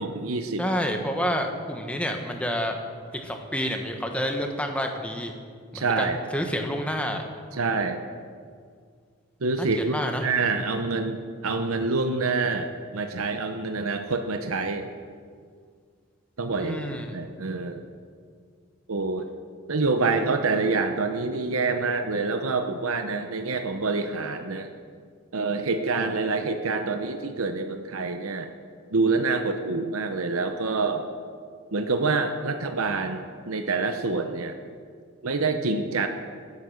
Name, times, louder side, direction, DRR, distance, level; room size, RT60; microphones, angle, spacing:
voice 1, 0.0-0.6 5.7-6.2 7.5-8.0 9.4-10.0 10.2-14.9 16.4-16.8 17.1-17.8 18.9-19.3 19.7-24.7 25.3-28.5 28.9-31.1 31.7-34.6 35.2-36.1, right 3 dB, 85° right, 6 dB, 0.9 m, -26 dB
voice 2, 0.6-2.8 3.1-5.3 5.7-7.2 9.6-10.3 16.6-17.2, equal, 5° left, 3 dB, 1.2 m, -29 dB
20.5 x 8.3 x 6.5 m, 2.1 s
head